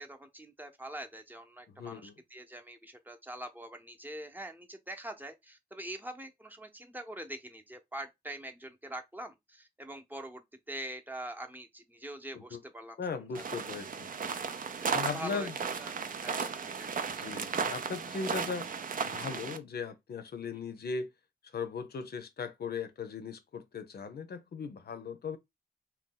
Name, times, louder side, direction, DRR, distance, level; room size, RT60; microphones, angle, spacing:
voice 1, 0.0-13.0 13.3-13.8 14.8-15.5 15.8-16.9 20.5-20.6, right 1 dB, 10° right, 0.7 m, -44 dB
voice 2, 1.7-2.2 12.3-12.6 13.0-14.3 14.9-15.5 17.2-18.7 19.0-21.1 21.5-25.4, left 5 dB, 75° left, 0.6 m, -38 dB
sound 1, 13.3-19.6, right 5 dB, 55° right, 0.5 m, -35 dB
2.6 x 2.2 x 3.7 m
cardioid pair, 65°, 17 cm